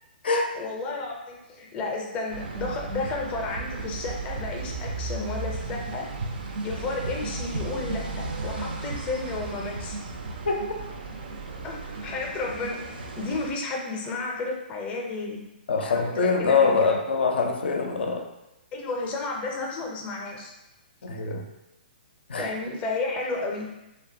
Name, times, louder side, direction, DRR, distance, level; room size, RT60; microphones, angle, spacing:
voice 1, 0.5-6.1 6.6-10.0 11.6-15.4 15.8-16.9 18.7-20.5 22.4-23.7, left 3 dB, 20° left, 0 dB, 0.5 m, -32 dB
sound 1, 2.3-13.5, right 3 dB, 65° right, 0.4 m, -35 dB
voice 2, 15.7-18.3 21.0-21.4 22.3-22.5, left 4 dB, 80° left, 2 dB, 0.4 m, -24 dB
2.7 x 2.2 x 2.5 m, 0.93 s
hypercardioid pair, 140°, 6 cm